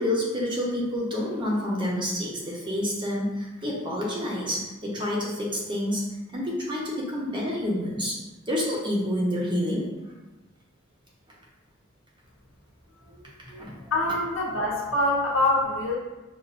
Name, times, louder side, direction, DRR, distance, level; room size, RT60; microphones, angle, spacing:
voice 1, 0.0-6.0 6.3-8.2 8.5-9.8 13.6-13.7, left 1 dB, 25° right, -4 dB, 0.7 m, -28 dB
voice 2, 13.5-16.0, left 2 dB, 70° left, -2 dB, 0.9 m, -25 dB
5.9 x 2.5 x 2.5 m, 1.1 s
head